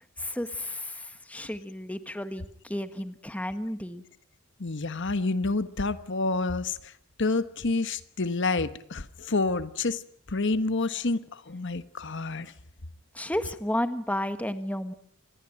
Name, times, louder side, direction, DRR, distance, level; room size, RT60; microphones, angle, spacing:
voice 1, 0.2-4.0 13.1-14.9, left 1 dB, 5° left, 10 dB, 1.4 m, -32 dB
voice 2, 4.6-6.9 7.2-10.0 10.3-12.5, left 3 dB, 55° left, 13 dB, 1.2 m, -28 dB
25.5 x 20.5 x 9.1 m, 0.65 s
head